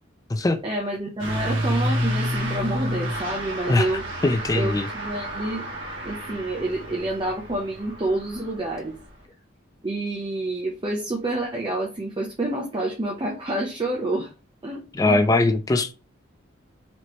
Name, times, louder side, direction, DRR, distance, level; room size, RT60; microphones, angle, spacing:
voice 1, 0.6-4.0 4.5-5.6 6.0-8.9 9.8-14.3 14.6-15.2, right 2 dB, 25° right, 0.7 m, -28 dB
Truck / Accelerating revving vroom, 1.2-9.2, equal, 80° right, 1.4 m, -30 dB
voice 2, 4.2-4.9 14.9-15.9, left 2 dB, 20° left, 0.4 m, -21 dB
4.3 x 3.0 x 3.1 m
head